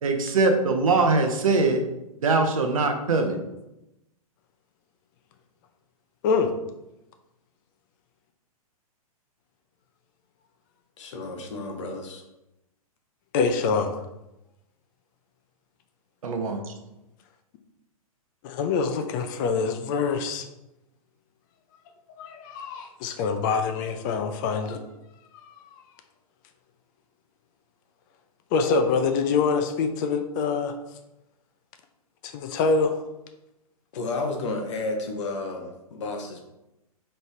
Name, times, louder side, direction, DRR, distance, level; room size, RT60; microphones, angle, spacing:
voice 1, 0.0-1.8 2.2-3.4 16.2-16.7, right 3 dB, 65° right, 4 dB, 0.8 m, -22 dB
voice 2, 11.0-12.2 33.9-36.4, left 2 dB, 50° left, 3 dB, 0.9 m, -32 dB
voice 3, 13.3-14.0 18.4-20.5 22.2-24.8 25.5-25.8 28.5-30.8 32.2-33.0, left 5 dB, 30° left, 7 dB, 0.5 m, -25 dB
4.4 x 3.2 x 3.3 m, 0.91 s
figure-of-eight pair, 115°, 19 cm